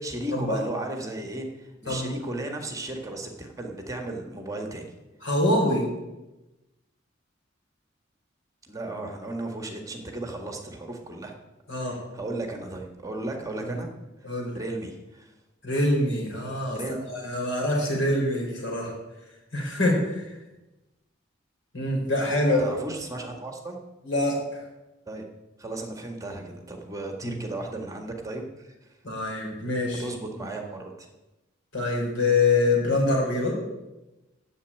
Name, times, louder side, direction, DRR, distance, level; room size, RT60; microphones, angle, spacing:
voice 1, 0.0-4.9 8.6-11.3 11.9-13.9 14.2-14.3 14.5-15.3 16.7-17.1 22.6-23.8 25.1-25.2 25.6-28.9 30.0-31.1, right 2 dB, 20° right, 3 dB, 1.8 m, -35 dB
voice 2, 5.2-5.8 11.7-12.0 13.6-13.7 14.2-14.5 15.6-16.8 17.1-18.9 19.5-20.3 21.7-22.7 24.0-24.6 27.2-27.4 29.0-30.1 31.7-33.6, left 2 dB, 80° left, -1 dB, 4.9 m, -25 dB
10.0 x 8.1 x 8.9 m, 1.0 s
head